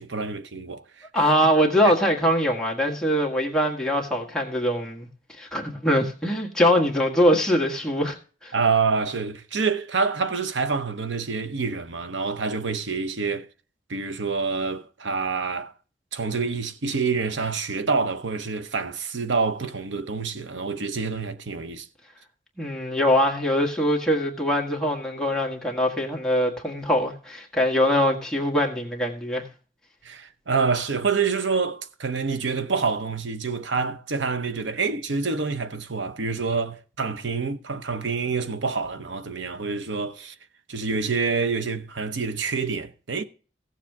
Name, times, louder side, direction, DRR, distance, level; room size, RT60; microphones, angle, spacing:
voice 1, 0.0-1.2 1.8-1.9 8.5-13.5 13.9-15.7 16.1-21.9 30.0-40.3 40.7-43.2, right 4 dB, 85° right, 0.8 m, -27 dB
voice 2, 1.1-5.1 5.4-8.2 8.4-8.5 22.6-29.4, equal, 5° left, 1.6 m, -22 dB
16.0 x 7.3 x 3.5 m
head